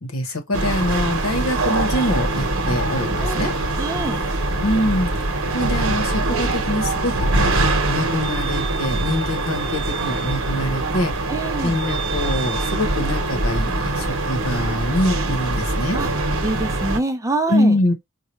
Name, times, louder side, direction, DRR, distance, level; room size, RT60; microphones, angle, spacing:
voice 1, 0.0-3.5 4.6-5.1 5.5-11.1 11.6-16.0 17.5-17.9, left 1 dB, 70° left, 1.0 m, -24 dB
sound 1, 0.5-17.0, right 2 dB, 70° right, 1.0 m, -23 dB
voice 2, 3.7-4.2 11.3-11.7 15.9-16.1 16.4-17.8, right 2 dB, 15° right, 0.5 m, -25 dB
4.6 x 2.3 x 3.1 m
head